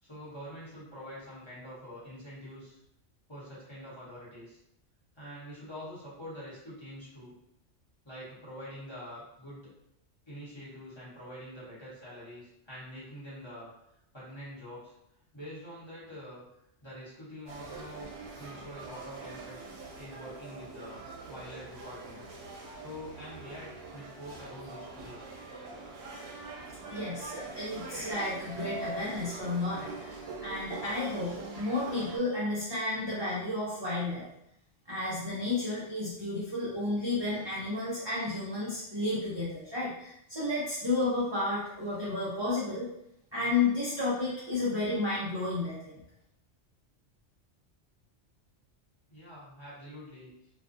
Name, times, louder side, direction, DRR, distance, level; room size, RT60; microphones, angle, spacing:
voice 1, 0.0-2.8 3.3-4.6 5.1-7.3 8.0-9.7 10.3-13.7 14.1-14.9 15.3-16.4 16.8-18.1 18.4-19.6 20.0-22.3 22.7-25.2 49.1-50.3, equal, 25° left, -10 dB, 1.0 m, -45 dB
sound 1, 17.5-32.2, right 3 dB, 70° right, 0.8 m, -43 dB
voice 2, 26.9-34.2 34.9-42.9 43.3-45.9, left 2 dB, 30° right, -8 dB, 0.5 m, -32 dB
2.4 x 2.2 x 2.5 m, 0.79 s
omnidirectional pair, 1.2 m